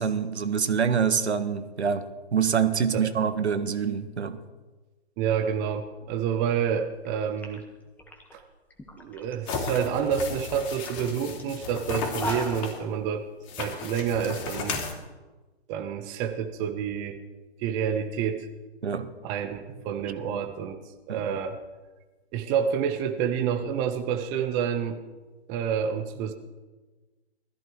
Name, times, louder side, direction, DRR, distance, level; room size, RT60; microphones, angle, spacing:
voice 1, 0.0-4.4 18.8-19.1 20.3-20.4 21.1-21.2, right 7 dB, 80° right, 1.6 m, -26 dB
voice 2, 5.2-7.6 8.3-8.4 9.0-13.2 13.6-14.8 15.7-17.2 17.6-18.5 19.2-21.6 22.3-25.0 25.5-26.3, right 8 dB, 10° right, 0.5 m, -28 dB
sound 1, 6.9-7.1 7.4-9.3 9.7-10.1 10.5-10.6 10.8-11.0 11.4-11.5 12.0-12.8, left 2 dB, 5° left, 1.6 m, -38 dB
sound 2, 9.5-12.8 13.5-14.9, left 4 dB, 30° left, 3.0 m, -34 dB
19.0 x 14.5 x 4.6 m
hypercardioid pair, 145°, 33 cm